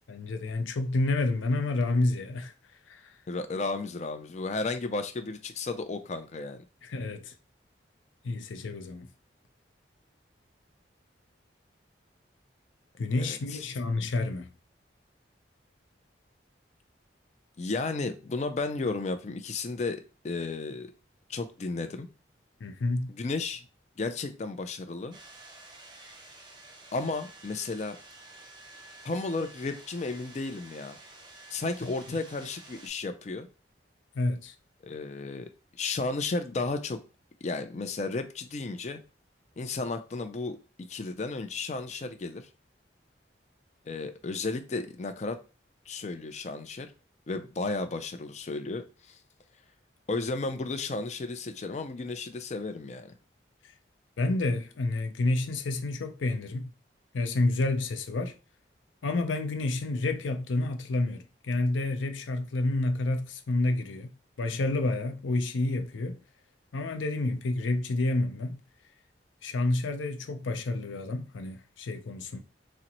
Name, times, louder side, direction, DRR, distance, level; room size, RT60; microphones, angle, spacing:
voice 1, 0.1-2.5 2.9-3.1 6.8-7.3 8.2-9.1 13.0-14.5 22.6-23.1 31.8-32.2 34.1-34.5 54.2-56.7 57.1-58.3 59.0-64.1 64.4-66.2 66.7-68.6 69.4-72.4, left 2 dB, 90° left, 0.5 m, -29 dB
voice 2, 3.3-6.6 13.2-13.6 17.6-20.9 21.3-22.1 23.1-23.6 24.0-25.2 26.9-28.0 29.0-31.0 31.5-33.5 34.8-35.5 35.8-37.0 37.4-39.0 39.6-42.5 43.9-45.4 45.9-46.9 47.3-49.2 50.1-53.1, left 3 dB, 35° left, 0.4 m, -33 dB
sound 1, 25.1-32.9, right 2 dB, 25° right, 0.6 m, -50 dB
3.9 x 2.1 x 2.9 m
head